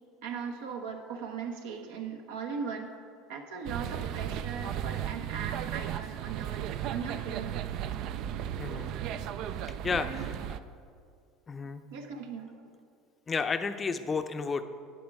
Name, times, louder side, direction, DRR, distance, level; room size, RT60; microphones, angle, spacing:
voice 1, 0.2-2.9 3.3-7.6 10.0-10.3 11.9-12.5, right 6 dB, 80° right, 4 dB, 1.0 m, -38 dB
sound 1, 3.6-10.6, right 10 dB, 60° right, 0.4 m, -35 dB
voice 2, 8.6-8.9 9.8-10.2 11.5-11.8 13.3-14.6, left 5 dB, 25° left, 9 dB, 0.6 m, -31 dB
12.0 x 8.5 x 3.5 m, 2.3 s
hypercardioid pair, 90°, 0 cm